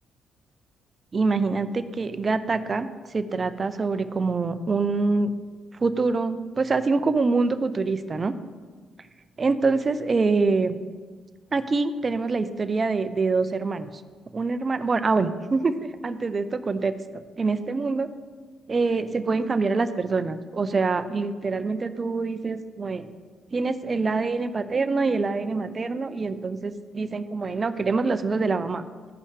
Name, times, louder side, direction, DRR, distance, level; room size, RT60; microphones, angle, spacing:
voice 1, 1.1-5.3 5.8-8.3 9.4-10.8 11.5-13.9 14.3-17.0 17.4-18.1 18.7-23.1 23.5-28.8, right 4 dB, 35° right, 10 dB, 0.6 m, -25 dB
14.5 x 5.4 x 3.4 m, 1.5 s
cardioid pair, 90°, 0 cm